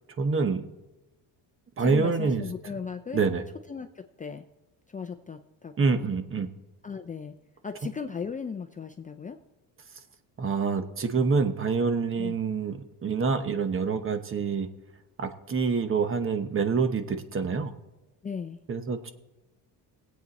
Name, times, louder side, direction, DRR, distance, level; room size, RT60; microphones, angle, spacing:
voice 1, 0.2-0.7 1.8-2.4 3.1-3.4 5.8-6.5 10.4-14.7 15.2-17.7 18.7-19.1, right 5 dB, 30° right, 10 dB, 1.0 m, -26 dB
voice 2, 1.8-3.2 3.7-4.4 4.9-6.1 6.8-7.3 7.6-9.4 12.2-12.3 18.2-18.6, left 6 dB, 20° left, 5 dB, 0.5 m, -37 dB
21.5 x 8.4 x 4.1 m, 1.0 s
cardioid pair, 120°, 42 cm